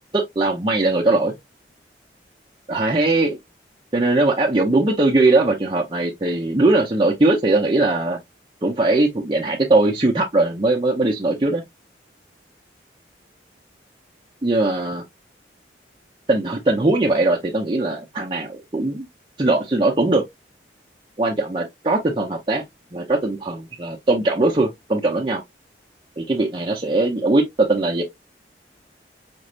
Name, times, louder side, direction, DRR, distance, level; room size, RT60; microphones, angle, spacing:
voice 1, 0.1-1.3 2.7-3.4 3.9-8.2 8.6-11.6 14.4-15.0 16.3-19.1 19.4-20.2 21.2-22.6 22.9-25.4 26.2-28.0, right 2 dB, 25° right, 0.6 m, -20 dB
5.2 x 3.2 x 2.4 m
head